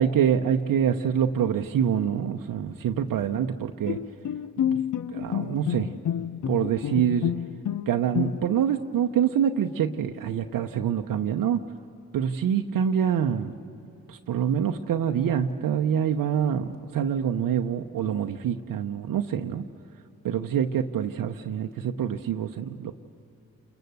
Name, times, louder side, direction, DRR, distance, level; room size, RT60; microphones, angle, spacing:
voice 1, 0.0-4.0 5.1-5.9 6.2-7.3 7.9-11.6 12.1-13.5 14.1-19.6 20.2-22.9, right 8 dB, 85° right, 4 dB, 0.8 m, -26 dB
Bowed string instrument, 3.9-8.7, left 9 dB, 65° left, 0.7 m, -29 dB
29.0 x 21.5 x 8.0 m, 2.7 s
supercardioid pair, 50°, 33 cm